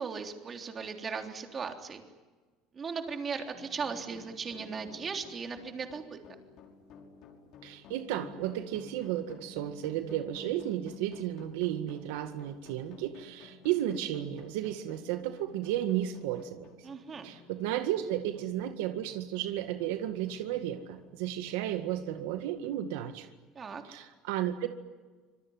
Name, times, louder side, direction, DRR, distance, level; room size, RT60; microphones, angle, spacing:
voice 1, 0.0-2.0 2.7-6.2 16.8-17.3 23.5-23.8, right 5 dB, 30° right, 4 dB, 3.5 m, -37 dB
sound 1, 3.5-22.8, left 5 dB, 60° left, 6.0 m, -54 dB
voice 2, 7.6-16.7 17.2-23.3 23.8-24.7, right 12 dB, 85° right, 8 dB, 1.9 m, -33 dB
26.0 x 21.5 x 9.7 m, 1.3 s
supercardioid pair, 115°, 0 cm